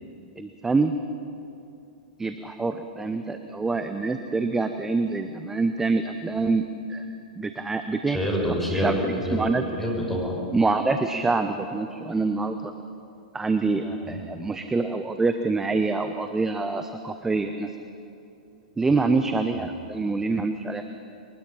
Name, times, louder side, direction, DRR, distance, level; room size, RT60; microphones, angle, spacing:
voice 1, 0.4-1.0 2.2-7.1 7.4-8.2 8.7-9.0 9.3-9.6 10.5-12.7 13.3-17.7 18.8-20.9, right 3 dB, 10° right, 8 dB, 0.9 m, -26 dB
voice 2, 8.1-9.5 9.8-10.4 13.8-14.2, equal, 5° left, -2 dB, 6.0 m, -27 dB
22.5 x 20.0 x 5.8 m, 2.7 s
figure-of-eight pair, 105°, 4 cm